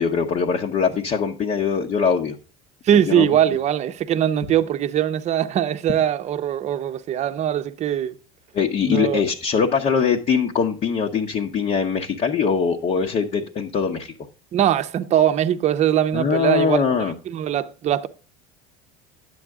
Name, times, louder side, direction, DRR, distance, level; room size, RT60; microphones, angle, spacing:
voice 1, 0.0-2.3 3.1-3.3 8.5-14.1 16.1-17.1, left 6 dB, 40° left, 1.0 m, -22 dB
voice 2, 2.8-8.2 8.9-9.2 14.5-18.1, right 10 dB, 40° right, 0.8 m, -21 dB
10.0 x 7.9 x 3.6 m
supercardioid pair, 125°, 19 cm